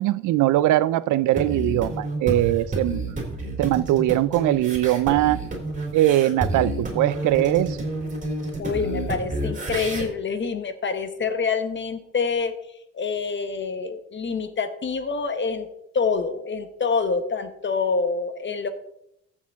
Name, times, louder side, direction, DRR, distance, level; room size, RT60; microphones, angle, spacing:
voice 1, 0.0-3.3 3.6-5.4 5.9-7.8, right 14 dB, 80° right, 18 dB, 0.5 m, -21 dB
sound 1, 1.3-10.0, right 2 dB, 25° right, 3.3 m, -30 dB
voice 2, 8.6-12.5 12.9-15.7 15.9-18.7, left 5 dB, 40° left, 9 dB, 1.2 m, -26 dB
14.5 x 6.6 x 3.6 m, 0.78 s
cardioid pair, 90°, 30 cm